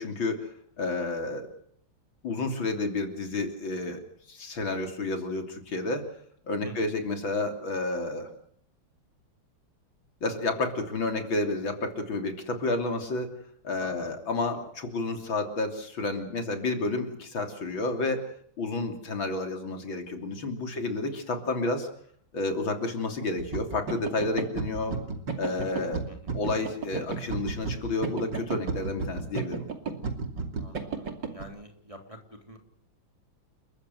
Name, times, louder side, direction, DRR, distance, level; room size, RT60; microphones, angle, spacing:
voice 1, 0.0-1.5 2.2-4.0 4.3-6.1 6.5-8.3 10.2-13.3 13.6-18.3 18.6-21.9 22.3-25.0 25.4-26.1 26.3-29.7, left 2 dB, 80° left, 5 dB, 3.9 m, -30 dB
voice 2, 13.8-14.1 14.5-14.6 20.7-20.8 26.1-26.4 30.6-32.6, equal, 15° right, 4 dB, 3.3 m, -46 dB
sound 1, 23.4-31.4, right 4 dB, 65° right, 3.3 m, -32 dB
30.0 x 14.5 x 7.9 m, 0.63 s
omnidirectional pair, 2.1 m